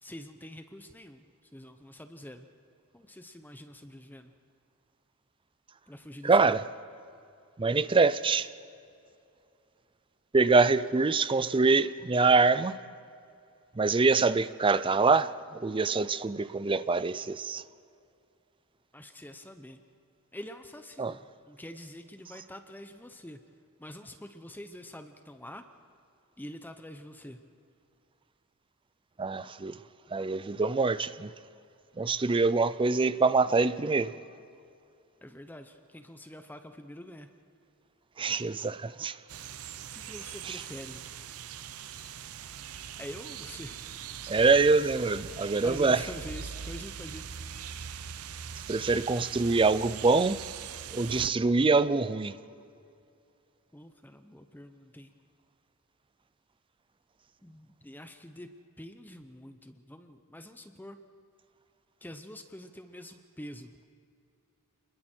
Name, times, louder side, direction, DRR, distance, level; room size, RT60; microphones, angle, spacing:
voice 1, 0.0-1.2 1.5-2.5 2.9-4.3 5.9-6.6 18.9-19.8 20.3-23.4 23.8-25.7 26.4-27.4 35.2-37.3 39.9-41.0 43.0-43.8 45.6-47.3 47.5-47.8 53.7-55.1 57.4-58.5 58.8-61.0 62.0-63.7, left 1 dB, 10° left, 0.8 m, -45 dB
voice 2, 6.2-6.6 7.6-8.5 10.3-12.8 13.8-17.6 21.0-21.2 29.2-29.8 30.1-31.3 32.0-34.1 38.2-39.2 40.4-40.6 44.3-46.1 48.7-50.4 50.9-52.3, right 4 dB, 25° right, 0.5 m, -25 dB
sound 1, 39.3-51.3, right 8 dB, 80° right, 0.7 m, -42 dB
29.0 x 21.0 x 4.5 m
head